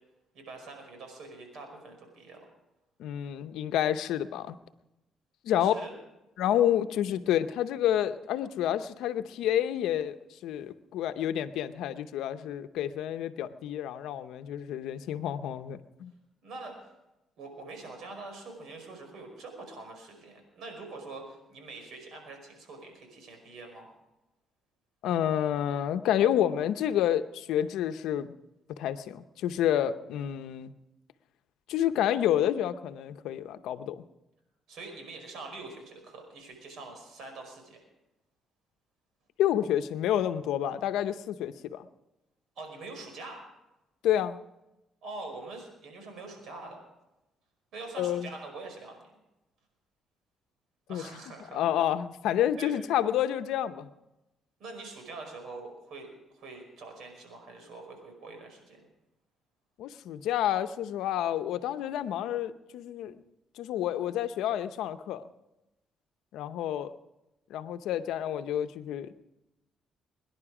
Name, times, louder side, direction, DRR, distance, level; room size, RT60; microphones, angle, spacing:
voice 1, 0.3-2.4 5.5-5.9 16.4-16.8 17.4-23.9 34.7-37.8 42.6-43.4 45.0-46.8 47.7-49.0 50.9-51.7 52.6-52.8 54.6-58.8, right 3 dB, 75° right, 4 dB, 5.2 m, -44 dB
voice 2, 3.0-4.6 5.4-5.7 6.4-10.2 10.4-16.1 25.0-28.4 28.8-30.7 31.7-34.0 39.4-41.9 44.0-44.4 48.0-48.3 50.9-51.0 51.5-53.9 59.8-63.2 63.6-65.2 66.3-66.9 67.5-69.2, left 11 dB, 85° left, 11 dB, 0.7 m, -29 dB
23.5 x 10.5 x 4.9 m, 0.96 s
cardioid pair, 90°, 0 cm